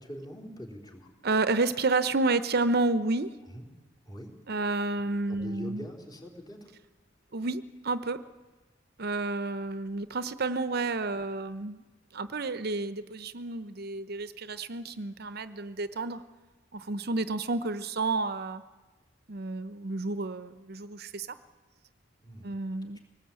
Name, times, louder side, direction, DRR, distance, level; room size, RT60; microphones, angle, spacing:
voice 1, 0.0-1.1 3.5-3.7 4.1-4.3 5.3-6.7 22.2-22.5, equal, 20° left, -1 dB, 4.3 m, -43 dB
voice 2, 1.2-3.3 4.5-5.9 7.3-8.2 9.0-11.8 12.1-16.2 16.7-18.6 19.3-21.3 22.4-23.0, right 3 dB, 55° right, 12 dB, 0.8 m, -30 dB
23.0 x 19.0 x 8.9 m, 1.2 s
head